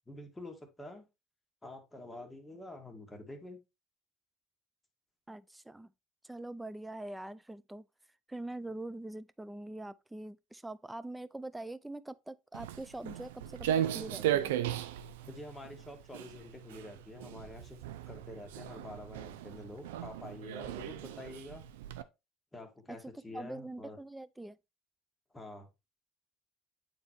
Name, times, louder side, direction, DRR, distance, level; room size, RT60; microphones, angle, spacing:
voice 1, 0.1-1.1 1.6-3.6 15.3-17.8 18.0-21.7 22.5-24.0 25.3-25.7, left 2 dB, 15° left, 1.9 m, -47 dB
voice 2, 5.3-5.9 6.2-7.8 8.3-14.5 22.9-23.0 23.3-24.6, right 2 dB, 10° right, 0.4 m, -43 dB
Walk footsteps, 12.5-22.0, right 11 dB, 85° right, 0.5 m, -37 dB
8.8 x 4.0 x 3.1 m
supercardioid pair, 85°, 0 cm